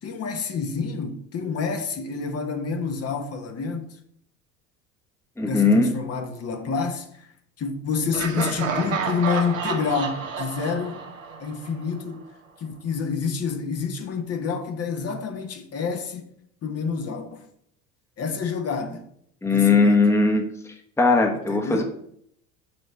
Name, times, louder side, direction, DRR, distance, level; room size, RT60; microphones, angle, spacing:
voice 1, 0.0-4.0 5.4-7.3 7.6-11.0 11.4-12.2 12.6-16.2 16.6-17.4 18.2-19.0 19.4-20.0 21.5-21.8, left 5 dB, 40° left, 1.3 m, -28 dB
voice 2, 5.4-5.9 19.4-20.5 21.0-21.8, left 3 dB, 5° left, 1.2 m, -19 dB
Laughter, 8.1-12.0, right 5 dB, 85° right, 1.1 m, -30 dB
6.2 x 4.4 x 6.3 m
hypercardioid pair, 70°, 39 cm